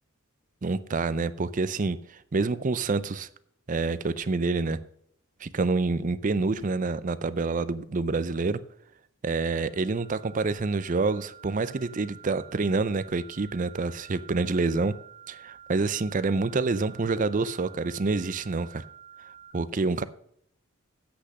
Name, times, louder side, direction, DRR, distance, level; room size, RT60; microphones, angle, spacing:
voice 1, 0.6-3.3 3.7-4.8 5.4-8.6 9.2-14.9 15.3-18.8 19.5-20.0, right 3 dB, 40° right, 15 dB, 0.5 m, -27 dB
sound 1, 9.6-19.5, right 8 dB, 20° right, 1.3 m, -50 dB
8.0 x 6.5 x 6.2 m, 0.68 s
head